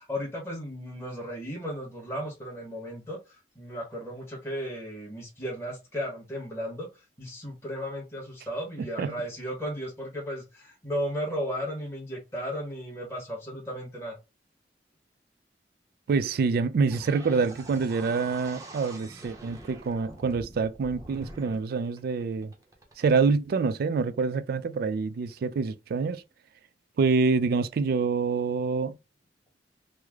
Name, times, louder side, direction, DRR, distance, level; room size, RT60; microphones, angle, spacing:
voice 1, 0.0-14.2, equal, 15° left, 1.1 m, -35 dB
voice 2, 16.1-22.5 23.0-26.2 27.0-29.0, right 4 dB, 55° right, 0.3 m, -26 dB
sound 1, 16.9-23.2, right 1 dB, 20° right, 0.7 m, -45 dB
3.2 x 2.1 x 3.5 m
head